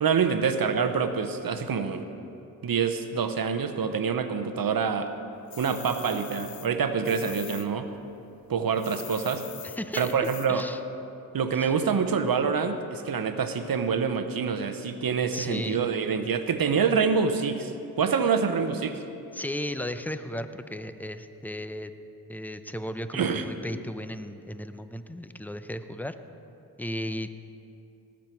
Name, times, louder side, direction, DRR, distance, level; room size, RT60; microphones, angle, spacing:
voice 1, 0.0-2.1 2.6-5.1 5.6-7.9 8.5-9.4 9.9-10.6 11.3-17.7 18.0-19.0 23.1-23.4, right 6 dB, 60° right, 9 dB, 0.9 m, -26 dB
sound 1, 5.5-7.7 7.9-10.7, left 9 dB, 60° left, 0.7 m, -43 dB
voice 2, 9.6-10.1 10.5-10.8 11.5-11.7 15.3-15.8 19.3-21.9 22.3-26.2 26.8-27.3, equal, 5° left, 10 dB, 0.6 m, -35 dB
18.5 x 7.5 x 4.5 m, 2.7 s
cardioid pair, 45°, 39 cm